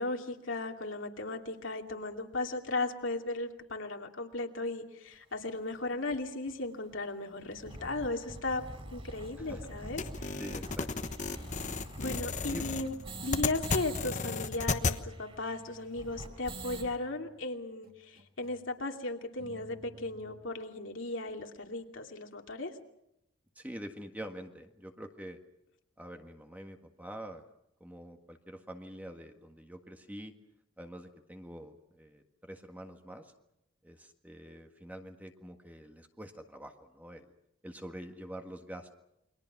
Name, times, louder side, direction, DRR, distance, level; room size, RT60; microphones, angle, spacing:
voice 1, 0.0-8.6 8.9-10.4 12.0-12.9 13.2-22.7, left 2 dB, 65° left, 3 dB, 2.6 m, -36 dB
sound 1, 5.3-5.4 6.1-6.2 6.5-6.6 6.8-6.9 7.3-14.0 14.3-14.4 14.6-16.9, right 1 dB, 30° right, 4.8 m, -45 dB
voice 2, 9.4-9.8 10.4-10.9 11.3-11.8 12.5-12.6 23.5-25.4 26.0-27.5 27.8-30.3 30.8-33.3 33.8-37.3 37.6-39.0, equal, 10° right, 5 dB, 1.6 m, -46 dB
sound 2, 10.0-15.0, left 4 dB, 35° left, 1.1 m, -34 dB
sound 3, 12.5-17.4 17.8-18.7 19.4-20.4, equal, 50° right, 2.7 m, -53 dB
29.0 x 23.5 x 6.0 m, 0.83 s
head